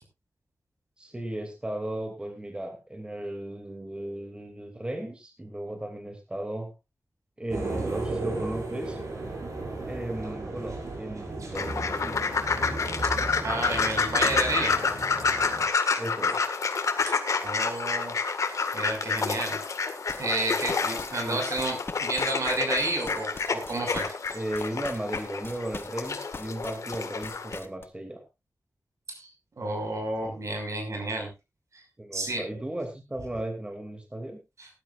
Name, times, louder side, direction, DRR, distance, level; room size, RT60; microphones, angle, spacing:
voice 1, 1.0-6.7 7.4-9.0 9.9-12.1 16.0-16.5 21.3-21.4 24.3-28.2 30.2-30.4 32.0-34.4, right 1 dB, 20° right, 4 dB, 2.7 m, -35 dB
sound 1, 7.5-15.6, right 2 dB, 90° right, 6.1 m, -35 dB
Ducks in Water, 11.5-27.6, left 5 dB, 85° left, 1.9 m, -29 dB
voice 2, 13.4-14.8 17.4-18.2 18.7-19.6 20.2-24.1 29.1-29.3 29.6-31.3 31.7-31.8 32.1-32.4 34.6-34.7, right 2 dB, 70° right, 3 dB, 5.8 m, -31 dB
sound 2, 20.1-27.8, left 3 dB, 45° left, 1.2 m, -41 dB
18.5 x 12.0 x 2.6 m, 0.25 s
wide cardioid pair, 105°, 5 cm